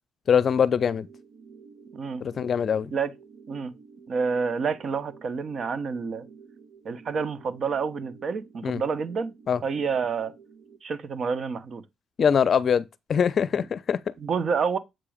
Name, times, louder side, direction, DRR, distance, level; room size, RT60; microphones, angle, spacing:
voice 1, 0.3-1.1 2.2-2.9 8.6-8.8 9.5-9.6 12.2-14.0, left 7 dB, 50° left, 0.6 m, -23 dB
sound 1, 0.8-10.8, right 5 dB, 75° right, 1.1 m, -51 dB
voice 2, 1.9-2.2 2.9-3.1 3.5-3.7 4.1-6.3 6.8-9.3 9.6-10.3 10.8-11.8 14.2-14.8, right 5 dB, 55° right, 0.9 m, -28 dB
7.5 x 3.0 x 5.0 m
cardioid pair, 90°, 0 cm